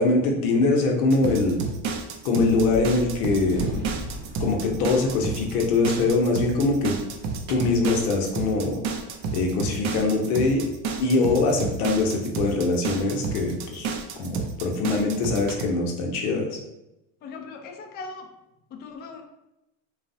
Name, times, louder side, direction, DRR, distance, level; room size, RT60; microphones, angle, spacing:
voice 1, 0.0-1.6 2.2-3.8 4.4-6.9 7.5-8.8 9.3-10.7 11.0-13.9 14.2-16.6, left 3 dB, 85° left, 2 dB, 0.7 m, -23 dB
sound 1, 1.1-15.6, right 4 dB, 40° right, 0.4 m, -31 dB
Gunshot gunfire, 2.5-9.0, equal, 10° right, 0.7 m, -40 dB
voice 2, 17.2-18.3 18.7-19.2, left 4 dB, 25° left, 3 dB, 0.3 m, -39 dB
3.1 x 2.0 x 2.6 m, 0.89 s
supercardioid pair, 95°, 43 cm